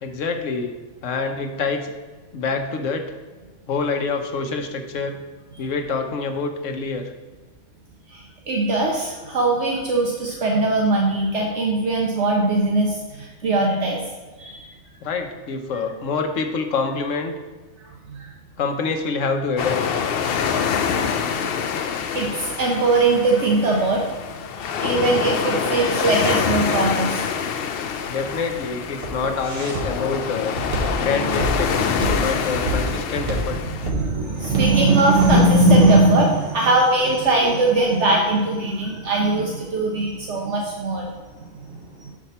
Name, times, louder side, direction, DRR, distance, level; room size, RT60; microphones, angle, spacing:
voice 1, 0.0-0.7 1.0-1.9 2.3-3.1 3.7-5.2 5.6-7.1 15.0-17.3 18.6-19.8 28.1-30.6 30.9-31.8 32.2-33.6, left 4 dB, 80° left, 5 dB, 1.1 m, -26 dB
voice 2, 8.1-14.0 14.4-14.7 18.1-18.3 20.9-21.1 22.1-24.2 24.8-27.2 31.0-31.4 32.0-32.2 32.8-32.9 33.6-41.1 42.0-42.1, right 2 dB, 65° right, -1 dB, 1.1 m, -20 dB
sound 1, 19.6-33.9, left 7 dB, 60° left, 0.6 m, -26 dB
Walk footsteps, 27.8-35.9, right 1 dB, 45° right, 1.4 m, -28 dB
6.8 x 5.0 x 4.3 m, 1.3 s
omnidirectional pair, 1.3 m